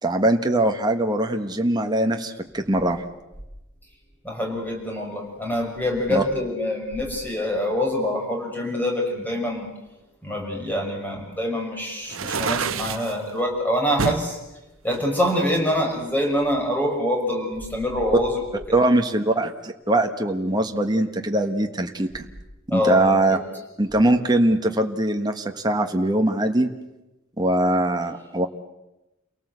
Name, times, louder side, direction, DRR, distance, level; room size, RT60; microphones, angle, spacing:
voice 1, 0.0-3.0 6.1-6.2 18.7-22.3 22.7-23.4 23.8-26.7 27.4-28.5, right 1 dB, 20° right, 4 dB, 1.4 m, -22 dB
voice 2, 4.2-9.7 10.2-14.4 14.8-18.4 22.7-23.4, left 1 dB, 10° left, 0 dB, 6.3 m, -25 dB
sound 1, 12.0-13.1 14.0-14.3 14.9-16.0, right 5 dB, 75° right, 1.1 m, -28 dB
29.0 x 18.5 x 8.2 m, 0.97 s
head